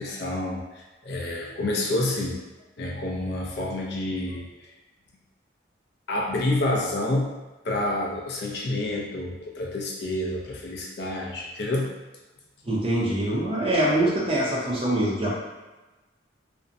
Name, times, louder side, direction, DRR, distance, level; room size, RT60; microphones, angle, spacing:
voice 1, 0.0-2.4 2.8-4.7 6.1-7.3 7.6-11.9 12.6-12.8, left 1 dB, 55° left, -2 dB, 0.4 m, -28 dB
voice 2, 12.7-15.3, right 1 dB, 30° right, -6 dB, 0.6 m, -24 dB
2.5 x 2.0 x 2.5 m, 1.2 s
head